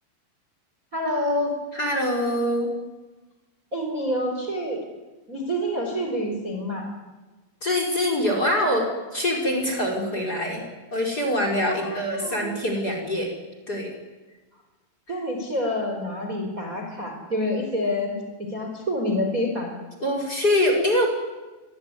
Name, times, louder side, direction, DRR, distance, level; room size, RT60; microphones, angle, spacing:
voice 1, 0.9-1.6 3.7-4.8 5.3-6.9 11.7-12.6 15.1-19.7, left 1 dB, 20° right, 3 dB, 4.3 m, -27 dB
voice 2, 1.7-2.7 7.6-10.6 10.9-13.3 13.7-13.9 20.0-21.1, left 1 dB, 20° left, 3 dB, 5.0 m, -24 dB
26.5 x 22.0 x 9.7 m, 1.2 s
omnidirectional pair, 5.3 m